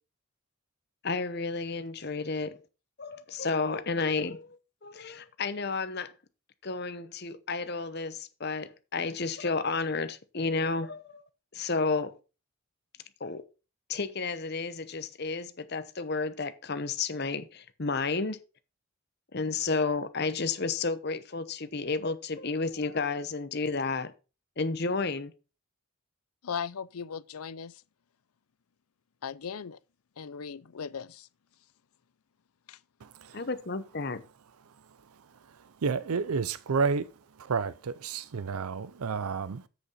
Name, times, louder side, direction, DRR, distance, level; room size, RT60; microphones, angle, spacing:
voice 1, 1.0-2.6 3.0-6.1 6.6-11.2 11.5-12.1 13.2-13.4 13.9-18.4 19.3-24.1 24.6-25.3 33.3-34.2, left 4 dB, 45° left, 0.9 m, -31 dB
voice 2, 26.4-27.8 29.2-29.8 30.2-31.3 32.7-32.8, left 6 dB, 85° left, 0.6 m, -38 dB
voice 3, 33.0-33.4 35.8-37.1 37.4-39.6, right 5 dB, 85° right, 0.5 m, -30 dB
8.0 x 6.8 x 5.6 m
head